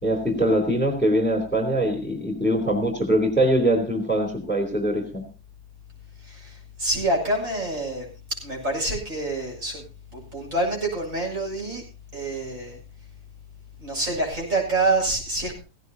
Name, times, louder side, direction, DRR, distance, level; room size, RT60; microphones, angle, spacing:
voice 1, 0.0-5.3, right 1 dB, 5° left, 2 dB, 3.3 m, -22 dB
voice 2, 6.2-9.8 10.1-11.8 12.1-12.8 13.8-15.6, right 2 dB, 55° right, -1 dB, 7.6 m, -27 dB
17.5 x 17.0 x 2.8 m, 0.34 s
omnidirectional pair, 1.7 m